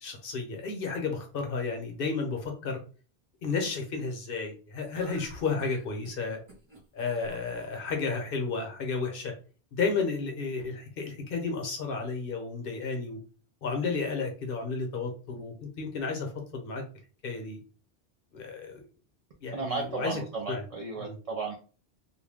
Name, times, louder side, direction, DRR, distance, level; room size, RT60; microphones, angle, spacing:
voice 1, 0.0-2.8 3.4-6.4 6.9-9.3 9.8-13.2 13.6-16.8 17.2-17.6 18.3-18.7 19.4-20.2 20.5-20.6 21.0-21.2, left 4 dB, 65° left, 3 dB, 0.9 m, -32 dB
sound 1, 4.9-7.9, right 1 dB, 25° right, 1.2 m, -51 dB
voice 2, 19.5-21.6, right 4 dB, 45° right, 0 dB, 0.5 m, -34 dB
2.4 x 2.2 x 3.4 m, 0.37 s
omnidirectional pair, 1.1 m